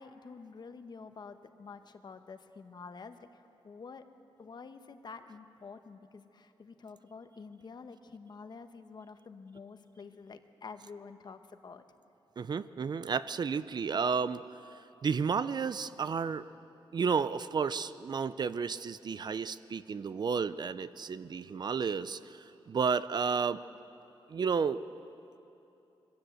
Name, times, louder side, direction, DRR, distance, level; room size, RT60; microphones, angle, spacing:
voice 1, 0.0-4.0 4.4-11.8, left 4 dB, 50° left, 9 dB, 1.0 m, -48 dB
voice 2, 12.4-14.4 15.0-16.5 16.9-23.6 24.3-24.8, right 6 dB, 50° right, 14 dB, 0.5 m, -32 dB
22.5 x 16.0 x 8.0 m, 2.9 s
wide cardioid pair, 105°, 10 cm